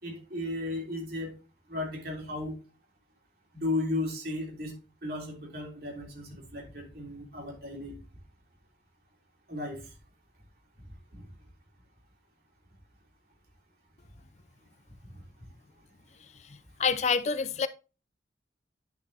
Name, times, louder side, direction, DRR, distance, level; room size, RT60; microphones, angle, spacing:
voice 1, 0.0-1.3 1.7-2.5 3.5-4.7 5.0-7.9 9.5-9.9 11.1-11.3 15.0-15.1, left 2 dB, 55° right, 3.2 m, -35 dB
voice 2, 16.8-17.7, left 5 dB, 40° left, 0.4 m, -26 dB
10.0 x 6.5 x 2.8 m
head